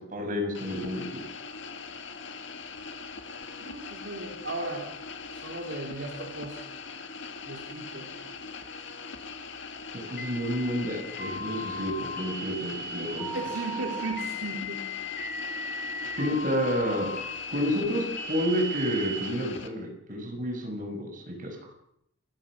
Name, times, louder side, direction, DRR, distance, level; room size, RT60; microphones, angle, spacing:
voice 1, 0.1-1.2 10.1-13.4 16.2-17.1 17.5-21.6, equal, 45° right, 2 dB, 6.7 m, -30 dB
sound 1, 0.5-19.7, left 4 dB, 70° left, 2.3 m, -41 dB
voice 2, 3.6-4.9 5.3-6.6 7.5-8.1 13.3-14.8, right 2 dB, 75° right, 1 dB, 3.6 m, -36 dB
sound 2, 10.2-19.2, equal, 50° left, 7.6 m, -37 dB
29.0 x 17.0 x 6.3 m, 0.76 s
head